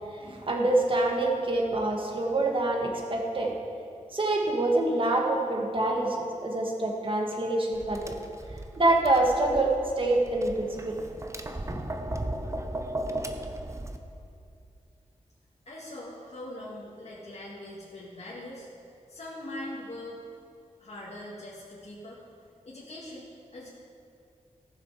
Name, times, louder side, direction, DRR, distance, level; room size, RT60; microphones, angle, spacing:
voice 1, 0.1-3.5 4.1-8.2 8.8-11.0 11.7-11.8, right 2 dB, 40° right, 0 dB, 1.8 m, -26 dB
Tap, 7.7-14.0, right 1 dB, 20° right, 0.8 m, -36 dB
voice 2, 15.7-18.7 19.1-20.2 20.8-22.2 22.6-23.3 23.5-23.7, left 1 dB, 55° left, -7 dB, 2.0 m, -41 dB
15.0 x 6.7 x 4.9 m, 2.5 s
wide cardioid pair, 75°, 13 cm